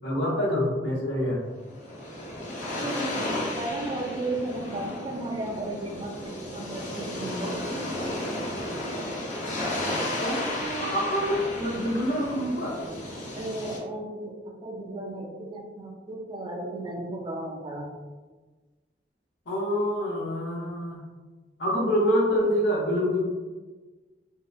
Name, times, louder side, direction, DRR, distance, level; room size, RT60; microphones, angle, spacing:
voice 1, 0.0-1.4 10.2-12.8 19.5-21.0 21.6-23.2, equal, 85° left, -3 dB, 0.7 m, -26 dB
sound 1, 1.5-13.8, left 1 dB, 45° left, 0.5 m, -33 dB
voice 2, 2.7-7.8 13.3-17.9, right 2 dB, 25° right, 0 dB, 0.4 m, -34 dB
2.7 x 2.1 x 2.3 m, 1.3 s
head